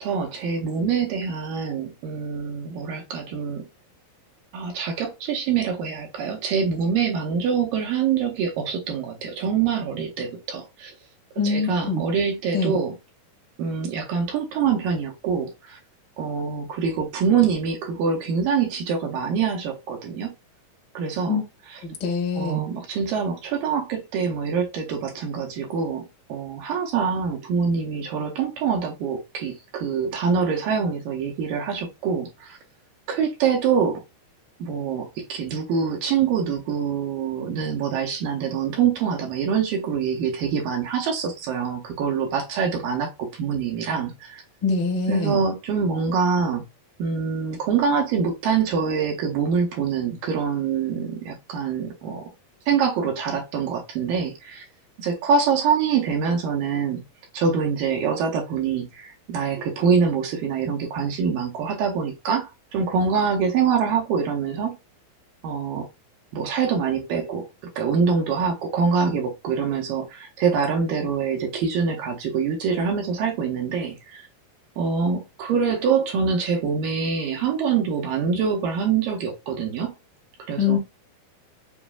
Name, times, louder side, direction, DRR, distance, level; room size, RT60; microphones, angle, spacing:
voice 1, 0.0-3.6 4.5-10.9 11.4-13.0 13.6-15.8 16.2-20.4 21.0-21.4 21.7-21.8 22.4-32.6 33.1-34.0 34.6-44.4 45.1-46.7 47.0-52.3 52.7-54.6 55.0-57.0 57.3-64.8 65.4-65.9 66.3-67.5 67.8-74.3 74.8-79.9 80.4-80.8, right 6 dB, 75° right, 2.3 m, -25 dB
voice 2, 11.4-12.0 12.5-12.8 21.3-21.4 21.8-22.6 44.6-45.4 80.6-80.8, left 4 dB, 60° left, 0.5 m, -24 dB
7.1 x 2.5 x 2.3 m
omnidirectional pair, 4.3 m